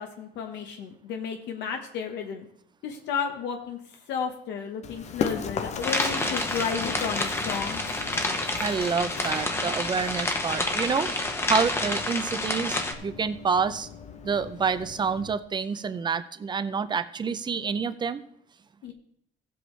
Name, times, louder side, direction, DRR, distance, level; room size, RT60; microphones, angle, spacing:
voice 1, 0.0-2.5 2.8-3.8 4.1-7.8 18.8-18.9, left 7 dB, 80° left, 4 dB, 1.1 m, -32 dB
Run, 4.8-15.4, left 6 dB, 40° left, 0.7 m, -38 dB
sound 1, 5.8-12.9, left 2 dB, 15° left, 0.9 m, -29 dB
voice 2, 8.6-11.1 11.5-13.9 14.2-18.2, right 6 dB, 25° right, 12 dB, 0.5 m, -28 dB
16.0 x 7.8 x 3.2 m, 0.70 s
cardioid pair, 145°, 18 cm